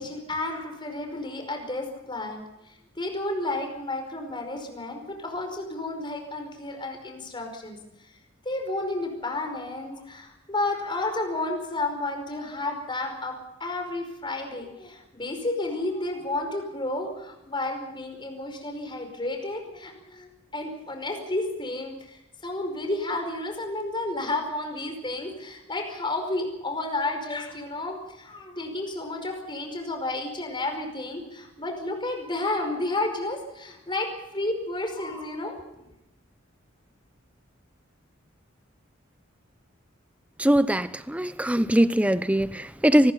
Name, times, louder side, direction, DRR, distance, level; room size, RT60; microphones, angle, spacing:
voice 1, 0.0-8.1 8.5-35.6, left 2 dB, 25° left, 5.2 m, -31 dB
voice 2, 40.4-43.1, right 1 dB, 5° right, 0.8 m, -21 dB
24.5 x 20.0 x 5.7 m
head